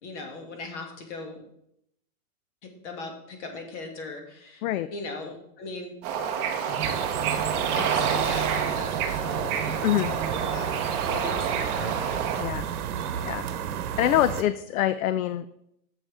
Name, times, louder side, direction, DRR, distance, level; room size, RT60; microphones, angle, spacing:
voice 1, 0.0-1.4 2.6-4.6 4.9-6.0 7.8-9.8 10.1-10.7 11.1-12.0, left 3 dB, 50° left, 3 dB, 2.2 m, -38 dB
Bird / Ocean, 6.0-12.4, right 7 dB, 20° right, 0.7 m, -28 dB
sound 1, 6.8-14.4, right 8 dB, 80° right, 1.0 m, -32 dB
voice 2, 14.0-15.5, left 12 dB, 70° left, 14 dB, 0.5 m, -25 dB
10.0 x 7.4 x 3.5 m, 0.78 s
supercardioid pair, 160°, 44 cm